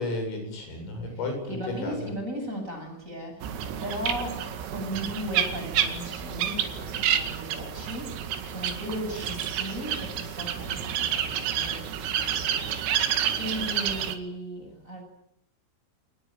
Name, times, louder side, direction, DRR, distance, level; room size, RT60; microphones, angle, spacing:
voice 1, 0.0-2.1, left 2 dB, 80° left, 5 dB, 10.5 m, -33 dB
voice 2, 1.5-3.4 3.8-8.2 8.4-12.8 13.3-15.0, equal, 15° right, 3 dB, 8.1 m, -36 dB
sound 1, 3.4-14.2, right 9 dB, 80° right, 4.8 m, -29 dB
28.0 x 20.0 x 9.3 m, 0.76 s
omnidirectional pair, 5.8 m